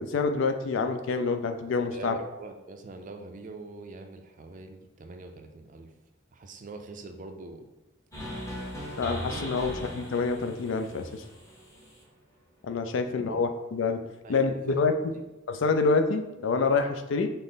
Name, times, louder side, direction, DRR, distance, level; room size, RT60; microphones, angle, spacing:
voice 1, 0.0-2.1 9.0-11.2 12.6-14.0 14.3-14.9 15.5-17.3, left 4 dB, 65° left, 7 dB, 0.4 m, -27 dB
voice 2, 1.9-5.9 6.3-7.7 13.1-13.4 14.2-14.4 14.7-14.8, right 3 dB, 40° right, 5 dB, 0.4 m, -43 dB
sound 1, 8.1-12.0, equal, 15° left, 0.8 m, -39 dB
5.4 x 2.0 x 3.9 m, 0.99 s
head